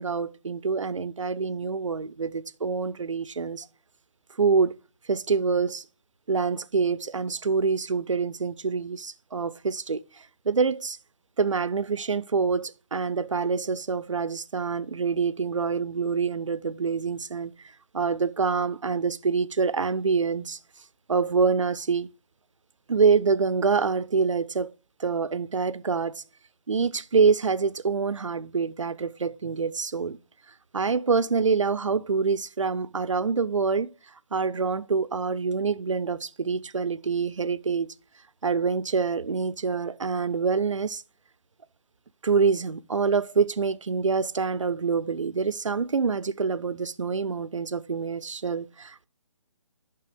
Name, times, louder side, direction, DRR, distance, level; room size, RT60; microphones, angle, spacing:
voice 1, 0.0-3.7 4.4-4.8 5.1-5.8 6.3-10.0 10.5-11.0 11.4-17.5 17.9-20.6 21.1-22.1 22.9-24.7 25.0-26.2 26.7-30.2 30.7-33.9 34.3-37.9 38.4-41.0 42.2-49.1, right 5 dB, 80° right, 0.5 m, -26 dB
7.5 x 5.9 x 3.3 m
figure-of-eight pair, 145°, 16 cm